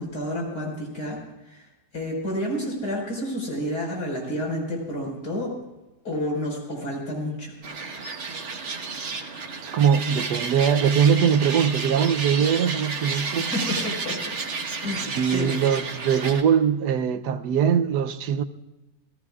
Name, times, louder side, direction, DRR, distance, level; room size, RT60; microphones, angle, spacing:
voice 1, 0.0-1.7 1.9-5.6 6.0-7.5 13.5-15.5, left 1 dB, 75° left, 5.8 m, -30 dB
sound 1, 7.6-16.4, right 4 dB, 50° right, 1.4 m, -31 dB
voice 2, 9.6-13.5 15.1-18.4, right 7 dB, 90° right, 1.3 m, -21 dB
27.5 x 17.5 x 2.4 m
omnidirectional pair, 1.7 m